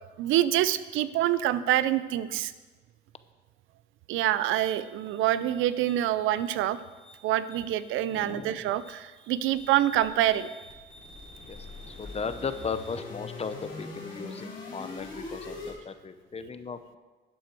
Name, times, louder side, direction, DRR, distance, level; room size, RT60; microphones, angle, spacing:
voice 1, 0.2-2.5 4.1-6.8 7.2-10.5, right 12 dB, 90° right, 15 dB, 0.5 m, -26 dB
sound 1, 4.4-15.7, left 2 dB, 70° left, 3.7 m, -45 dB
voice 2, 8.1-8.6 11.4-11.6 11.9-17.0, left 5 dB, 30° left, 11 dB, 0.7 m, -36 dB
12.0 x 7.6 x 4.5 m, 1.3 s
cardioid pair, 90°, 20 cm